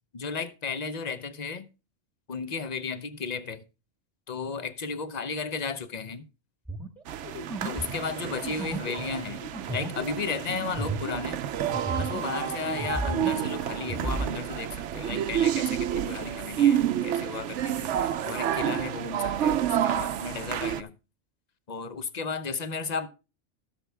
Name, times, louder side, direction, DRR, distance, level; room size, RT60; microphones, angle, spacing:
voice 1, 0.1-1.7 2.3-3.6 4.3-6.3 7.6-9.4 9.7-11.4 12.0-20.9 21.7-23.1, left 5 dB, 40° left, 0.9 m, -34 dB
sound 1, 6.7-12.4 12.7-14.3, right 2 dB, ahead, 1.6 m, -35 dB
sound 2, 7.1-20.8, right 10 dB, 75° right, 1.0 m, -29 dB
17.0 x 6.7 x 3.4 m
omnidirectional pair, 1.2 m